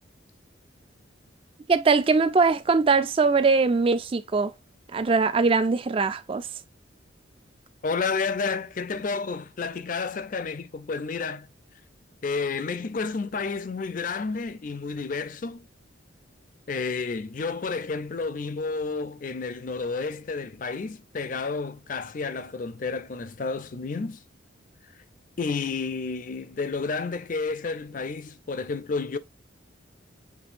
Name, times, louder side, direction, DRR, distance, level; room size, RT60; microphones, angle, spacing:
voice 1, 1.7-4.5 4.9-6.5, right 4 dB, 30° right, 0.3 m, -21 dB
voice 2, 7.8-11.5 12.2-15.7 16.7-24.2 25.4-29.2, left 4 dB, 40° left, 0.4 m, -31 dB
6.1 x 3.1 x 2.5 m
head